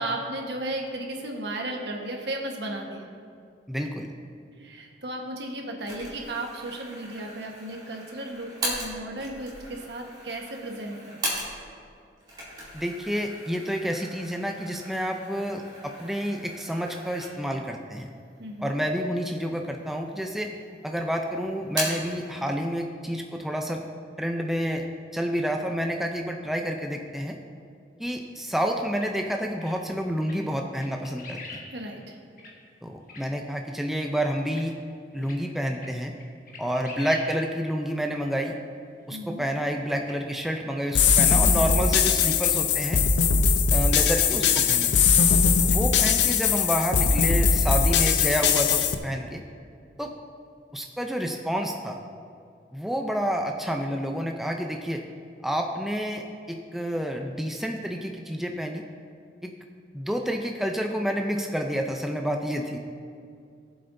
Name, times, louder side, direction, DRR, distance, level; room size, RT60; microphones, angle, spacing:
voice 1, 0.0-3.1 4.6-11.4 18.4-18.8 31.7-32.2 39.1-39.4, right 1 dB, 75° right, 1 dB, 1.3 m, -35 dB
voice 2, 3.7-4.1 12.7-18.1 18.6-20.5 20.8-23.8 24.2-24.9 25.1-27.4 28.0-31.6 32.8-34.8 35.1-36.1 36.6-38.5 39.1-43.0 43.7-44.9 45.6-49.4 50.0-50.1 50.7-52.0 52.7-55.1 55.4-58.8 59.4-59.5 59.9-62.8, equal, ahead, 2 dB, 0.5 m, -29 dB
sound 1, 5.9-11.9 12.2-17.7 18.1-18.2 19.0-19.7 20.0-20.8 21.0-22.2, right 1 dB, 25° right, 2.6 m, -37 dB
sound 2, 28.9-29.1 29.6-29.7 30.2-30.4 30.7-31.6 32.0-32.1 32.4-32.5 33.1-33.2 34.5-34.6 35.2-35.4 35.7-35.9 36.2-37.3 37.7-37.8 40.0-40.1, left 4 dB, 50° left, 1.4 m, -43 dB
sound 3, 40.9-48.9, left 6 dB, 85° left, 0.6 m, -21 dB
17.0 x 7.7 x 2.7 m, 2.3 s
head